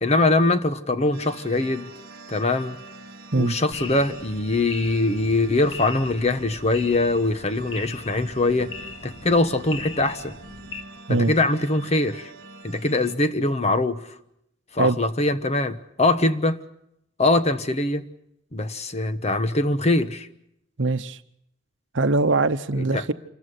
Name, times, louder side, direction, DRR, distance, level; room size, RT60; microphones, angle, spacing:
voice 1, 0.0-1.9 2.3-2.8 3.3-8.7 9.0-10.3 11.1-12.3 12.6-14.1 14.7-16.6 17.2-18.1 18.5-20.3 22.8-23.0, left 2 dB, 35° left, 1.1 m, -22 dB
sound 1, 1.1-13.1, right 2 dB, 55° right, 2.2 m, -45 dB
sound 2, 3.7-10.8, left 4 dB, 80° left, 2.0 m, -40 dB
voice 2, 20.8-21.2 21.9-23.1, right 3 dB, 70° right, 0.9 m, -22 dB
27.5 x 14.5 x 9.9 m
head